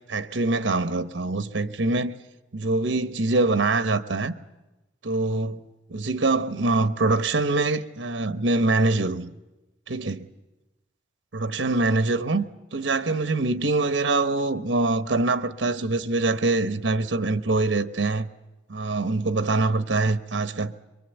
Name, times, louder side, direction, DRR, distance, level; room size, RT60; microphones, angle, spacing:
voice 1, 0.1-2.1 2.5-4.3 5.0-5.6 5.9-9.3 9.9-10.3 11.3-12.4 12.7-18.3 18.7-20.7, right 2 dB, 85° right, 1.0 m, -24 dB
24.5 x 23.0 x 8.0 m
head